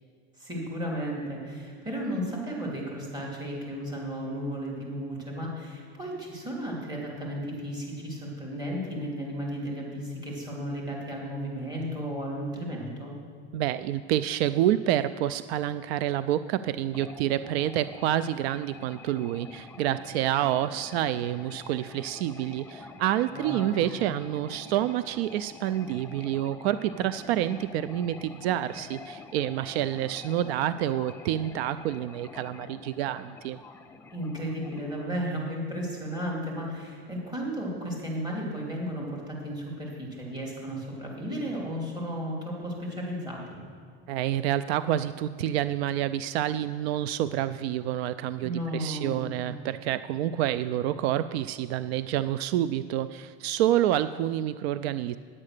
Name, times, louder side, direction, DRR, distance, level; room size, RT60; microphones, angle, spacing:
voice 1, 0.4-13.1 23.3-23.6 34.1-43.6 48.4-49.2, equal, 15° right, -3 dB, 3.0 m, -34 dB
voice 2, 13.5-33.6 44.1-55.2, right 12 dB, 75° right, 14 dB, 0.5 m, -28 dB
sound 1, 16.9-35.0, left 4 dB, 10° left, 0.3 m, -47 dB
9.9 x 8.5 x 6.6 m, 2.1 s
supercardioid pair, 140°, 32 cm